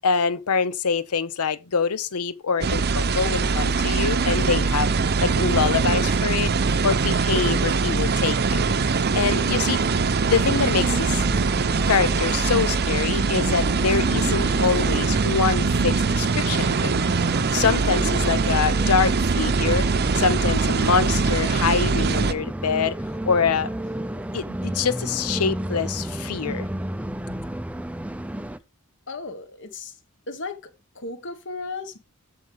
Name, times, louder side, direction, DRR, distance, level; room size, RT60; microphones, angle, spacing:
voice 1, 0.0-4.9 5.2-6.5 6.8-8.7 9.1-9.8 10.2-11.2 11.9-17.2 17.5-19.9 20.1-23.0 23.3-23.7 24.3-26.7, left 5 dB, 85° left, 0.7 m, -25 dB
sound 1, 2.6-22.3, right 4 dB, 45° right, 0.6 m, -22 dB
sound 2, 10.8-28.6, right 1 dB, 5° right, 0.4 m, -33 dB
voice 2, 29.1-29.9 30.3-30.7 30.9-32.0, left 3 dB, 55° left, 1.5 m, -35 dB
14.0 x 5.1 x 3.5 m
head